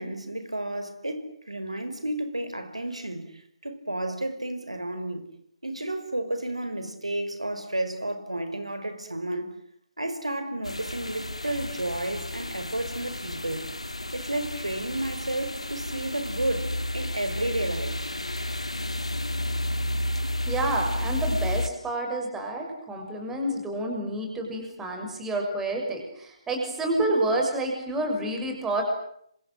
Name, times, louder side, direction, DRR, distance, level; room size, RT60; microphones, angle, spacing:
voice 1, 0.0-5.3 5.6-9.5 10.0-13.7 14.1-18.0, right 1 dB, 90° right, 5.4 m, -32 dB
sound 1, 10.6-21.7, left 1 dB, 90° left, 3.0 m, -31 dB
voice 2, 20.5-28.8, right 1 dB, 10° right, 6.2 m, -29 dB
30.0 x 25.5 x 7.8 m
figure-of-eight pair, 150°, 3 cm